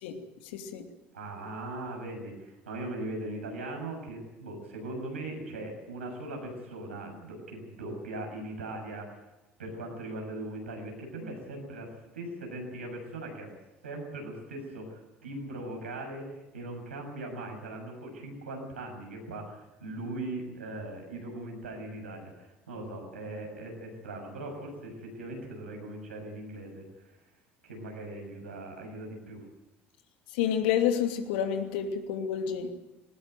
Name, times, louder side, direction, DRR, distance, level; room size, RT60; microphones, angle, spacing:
voice 1, 0.0-0.8 30.3-32.7, left 9 dB, 65° left, 5 dB, 2.8 m, -29 dB
voice 2, 1.1-9.2 9.6-13.5 13.8-27.2 27.6-29.4, right 2 dB, 80° right, 2 dB, 6.9 m, -40 dB
20.5 x 18.5 x 9.1 m, 0.99 s
figure-of-eight pair, 65°, 6 cm